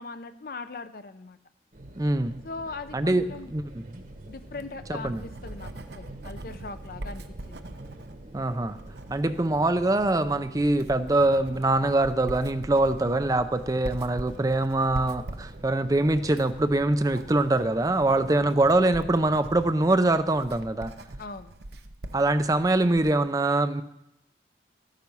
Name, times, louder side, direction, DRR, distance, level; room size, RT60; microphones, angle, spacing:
voice 1, 0.0-1.4 2.4-3.5 4.3-7.6 18.1-18.5 21.2-21.5, left 3 dB, 55° left, 11 dB, 0.7 m, -40 dB
sound 1, 1.7-19.7, right 1 dB, 50° right, 1.3 m, -46 dB
voice 2, 2.0-2.4 2.9-3.8 4.9-5.2 8.3-8.8 9.1-20.9 22.1-23.8, right 2 dB, 20° right, 11 dB, 0.5 m, -24 dB
Writing, 4.5-23.2, right 1 dB, 65° right, 0.8 m, -43 dB
13.5 x 9.1 x 5.5 m, 0.86 s
head